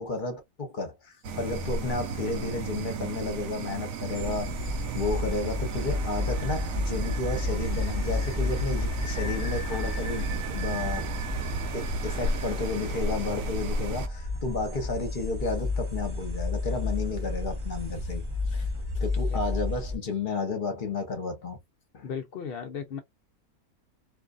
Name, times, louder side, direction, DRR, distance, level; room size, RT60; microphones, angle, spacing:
voice 1, 0.0-4.5 4.9-11.1 11.7-18.7 18.9-21.6 21.9-22.1, left 3 dB, 40° left, 0.9 m, -32 dB
sound 1, 1.2-14.1, right 3 dB, 70° right, 0.9 m, -34 dB
sound 2, 4.1-20.0, left 2 dB, 30° right, 0.6 m, -31 dB
voice 2, 22.0-23.0, left 7 dB, 70° left, 0.5 m, -36 dB
2.6 x 2.4 x 2.3 m
omnidirectional pair, 1.6 m